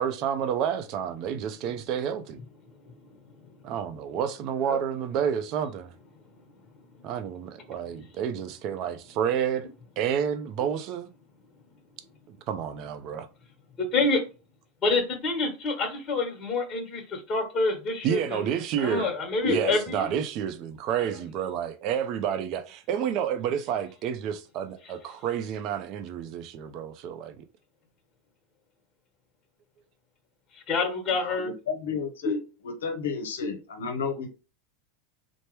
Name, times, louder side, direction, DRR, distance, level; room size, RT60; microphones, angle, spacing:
voice 1, 0.0-2.4 3.6-5.9 7.0-9.7 10.0-11.1 12.3-13.3 18.0-19.1 19.4-27.4, right 8 dB, 50° right, 0.5 m, -30 dB
voice 2, 14.8-18.4 18.8-20.1 30.5-31.5 32.2-32.4, left 3 dB, 25° left, 1.2 m, -27 dB
voice 3, 31.2-32.4 32.6-34.3, left 6 dB, 80° left, 0.6 m, -32 dB
3.1 x 2.1 x 3.1 m
hypercardioid pair, 100°, 0 cm